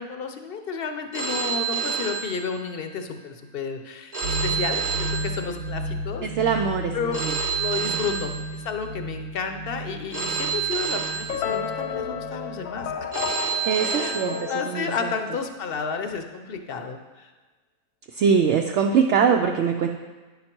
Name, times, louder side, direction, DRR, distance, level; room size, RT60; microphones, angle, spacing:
voice 1, 0.0-6.2 6.9-7.2 7.6-13.1 13.8-17.3, left 5 dB, 50° left, 6 dB, 0.8 m, -32 dB
Telephone, 1.1-3.0 4.1-6.0 7.1-9.0 10.1-12.0 13.1-15.0, right 6 dB, 35° right, 0.9 m, -29 dB
sound 1, 4.2-13.0, equal, 90° right, 1.1 m, -34 dB
voice 2, 6.2-7.4 7.9-8.3 13.6-15.1 18.1-19.9, right 6 dB, 65° right, 2 dB, 0.8 m, -23 dB
sound 2, 11.3-15.6, left 7 dB, 80° left, 1.0 m, -32 dB
9.6 x 5.8 x 4.4 m, 1.3 s
omnidirectional pair, 1.4 m